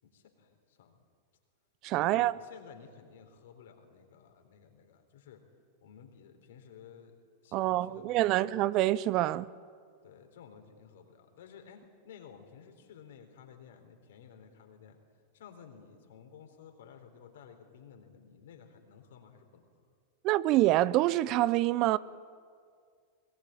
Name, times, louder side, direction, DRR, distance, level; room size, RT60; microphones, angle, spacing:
voice 1, 0.0-1.0 2.0-5.4 5.8-8.6 10.0-15.0 15.3-19.7, left 7 dB, 65° left, 3.9 m, -54 dB
voice 2, 1.8-2.4 7.5-9.5 20.2-22.0, right 15 dB, 45° right, 0.6 m, -26 dB
22.5 x 20.5 x 9.1 m
figure-of-eight pair, 95°, 0 cm